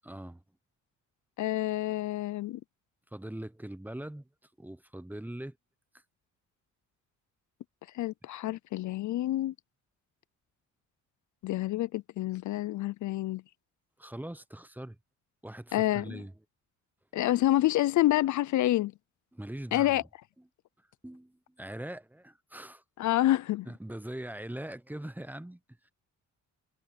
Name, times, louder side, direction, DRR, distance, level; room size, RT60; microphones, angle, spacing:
voice 1, 0.0-0.4 3.1-5.6 5.9-6.0 14.0-15.0 15.4-16.3 19.3-20.1 20.4-20.5 20.8-23.2 23.7-25.9, right 1 dB, 5° right, 1.0 m, -42 dB
voice 2, 1.4-2.6 7.9-9.5 11.4-13.4 15.7-16.2 17.1-18.9 19.7-20.0 23.0-23.7, left 15 dB, 65° left, 0.5 m, -28 dB
cardioid pair, 90°, 31 cm